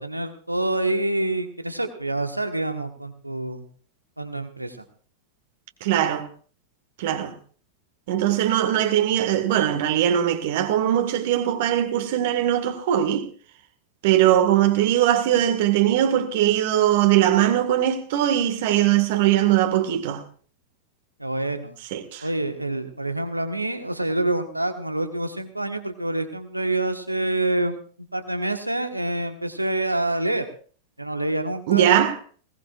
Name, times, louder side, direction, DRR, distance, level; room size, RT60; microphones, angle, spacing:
voice 1, 0.0-3.6 4.2-4.8 21.2-21.8 22.2-27.8 28.1-30.4 31.0-32.1, right 2 dB, 85° right, 1.4 m, -27 dB
voice 2, 5.8-6.3 7.0-7.3 8.1-13.3 14.0-20.2 21.9-22.3 31.7-32.2, right 11 dB, 50° right, 1.8 m, -20 dB
20.5 x 18.5 x 2.5 m
figure-of-eight pair, 90°, 0 cm